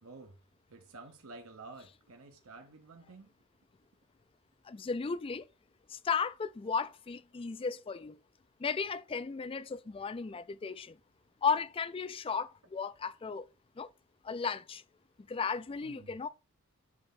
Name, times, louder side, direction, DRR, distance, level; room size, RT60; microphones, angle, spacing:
voice 1, 0.0-0.4 0.7-3.3 15.8-16.2, right 3 dB, 70° right, 0.9 m, -51 dB
voice 2, 4.7-5.5 5.9-8.2 8.6-11.0 11.4-13.5 13.8-13.9 14.2-14.8 15.3-16.3, left 5 dB, 25° left, 0.3 m, -35 dB
7.9 x 3.4 x 3.6 m
head